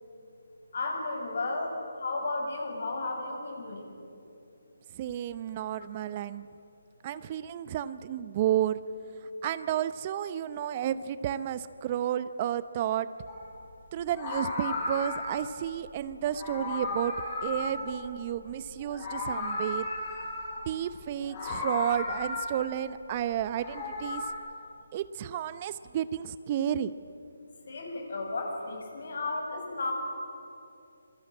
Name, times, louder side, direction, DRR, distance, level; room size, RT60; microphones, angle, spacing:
voice 1, 0.7-4.0 27.7-29.9, left 2 dB, 60° left, 3 dB, 7.0 m, -33 dB
voice 2, 4.9-6.4 7.0-8.8 9.4-13.1 13.9-17.1 17.4-19.9 20.7-24.3 24.9-26.9, right 10 dB, 30° right, 14 dB, 0.7 m, -31 dB
Meow, 13.3-13.5 14.1-15.5 16.2-18.5 18.8-20.7 21.2-22.8 23.4-24.3, left 2 dB, 30° left, 6.7 m, -35 dB
26.0 x 23.5 x 8.7 m, 2.7 s
figure-of-eight pair, 150°, 0 cm